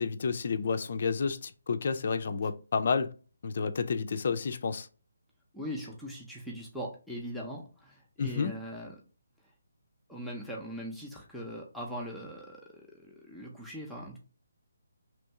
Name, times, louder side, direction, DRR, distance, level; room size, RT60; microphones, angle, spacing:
voice 1, 0.0-3.1 3.4-4.9 8.2-8.5, left 5 dB, 50° left, 0.4 m, -30 dB
voice 2, 5.5-8.9 10.1-14.2, equal, ahead, 0.6 m, -40 dB
3.1 x 2.6 x 4.4 m
figure-of-eight pair, 145°, 0 cm